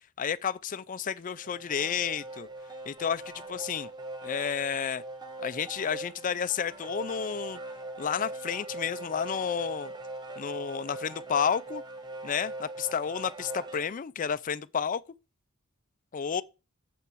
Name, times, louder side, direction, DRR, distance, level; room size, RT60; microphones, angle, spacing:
voice 1, 0.2-2.5 2.9-3.2 3.5-3.9 4.2-5.0 5.4-7.6 8.0-9.9 10.4-11.8 12.2-15.0 16.1-16.4, left 7 dB, 40° left, 0.4 m, -31 dB
sound 1, 1.3-13.9, right 2 dB, 20° right, 1.0 m, -41 dB
7.1 x 5.7 x 6.2 m
head